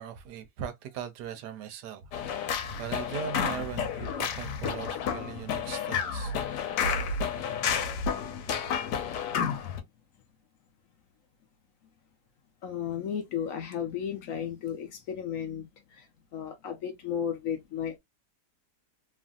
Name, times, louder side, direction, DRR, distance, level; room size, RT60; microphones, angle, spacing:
voice 1, 0.0-2.0 2.3-6.3, right 9 dB, 90° right, 1.3 m, -39 dB
sound 1, 2.1-9.8, left 6 dB, 80° left, 1.3 m, -31 dB
voice 2, 6.1-8.5 8.8-8.9 12.6-18.0, left 8 dB, 65° left, 0.9 m, -36 dB
3.0 x 2.5 x 2.3 m
omnidirectional pair, 1.8 m